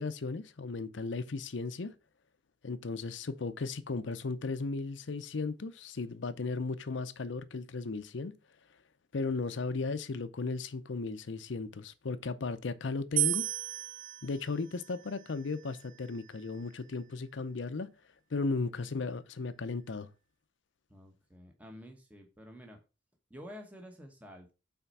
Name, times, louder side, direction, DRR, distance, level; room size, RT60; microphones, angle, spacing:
voice 1, 0.0-1.9 2.6-8.3 9.1-13.5 14.2-17.9 18.3-20.1, left 3 dB, 75° left, 0.6 m, -36 dB
sound 1, 13.2-16.4, right 14 dB, 45° right, 0.4 m, -35 dB
voice 2, 20.9-22.8 23.3-24.5, equal, 10° right, 1.1 m, -50 dB
5.8 x 4.4 x 5.4 m
head